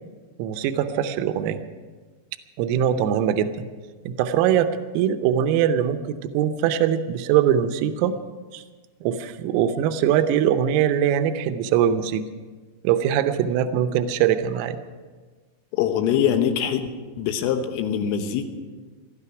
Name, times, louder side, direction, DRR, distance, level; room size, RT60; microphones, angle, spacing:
voice 1, 0.4-1.6 2.6-3.7 4.1-4.7 5.0-8.1 8.5-8.6 9.0-12.2 12.9-14.8, right 9 dB, 85° right, 9 dB, 3.4 m, -22 dB
voice 2, 15.7-16.9 17.2-18.5, left 9 dB, 80° left, 6 dB, 3.6 m, -23 dB
18.5 x 13.0 x 5.9 m, 1.4 s
omnidirectional pair, 6.0 m